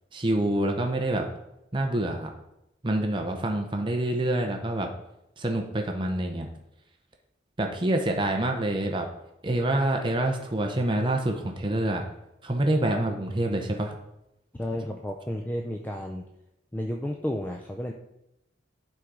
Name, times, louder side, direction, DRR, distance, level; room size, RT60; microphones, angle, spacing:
voice 1, 0.1-1.3 1.7-2.3 2.8-4.9 5.4-6.5 7.6-9.1 9.4-12.0 12.4-13.9, right 1 dB, 25° right, 3 dB, 0.7 m, -26 dB
voice 2, 14.5-16.2 16.7-17.9, left 1 dB, 10° left, 2 dB, 0.4 m, -32 dB
11.5 x 3.8 x 4.7 m, 0.86 s
head